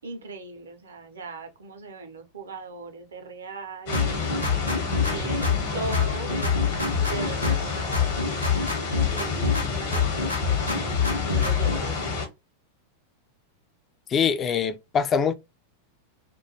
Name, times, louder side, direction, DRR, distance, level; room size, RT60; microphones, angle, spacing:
voice 1, 0.0-4.6 5.0-8.5 9.0-12.2, right 3 dB, 70° right, 0.6 m, -39 dB
sound 1, 3.9-5.7 5.9-7.7 7.9-9.7 9.9-11.8, left 6 dB, 85° left, 0.6 m, -25 dB
sound 2, 3.9-12.3, left 4 dB, 55° left, 0.9 m, -30 dB
voice 2, 14.1-15.3, left 7 dB, 25° left, 0.3 m, -23 dB
2.3 x 2.2 x 2.8 m
figure-of-eight pair, 90°, 0 cm